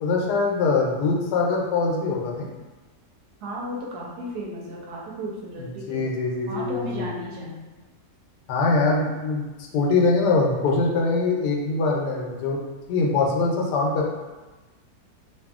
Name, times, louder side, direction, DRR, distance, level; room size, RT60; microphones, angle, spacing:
voice 1, 0.0-2.5 5.6-7.1 8.5-9.4 9.7-12.6 12.9-14.1, left 3 dB, 85° left, -1 dB, 1.2 m, -23 dB
voice 2, 3.4-6.0 6.5-7.7, right 1 dB, 80° right, -3 dB, 1.2 m, -34 dB
2.6 x 2.6 x 2.3 m, 1.2 s
omnidirectional pair, 1.7 m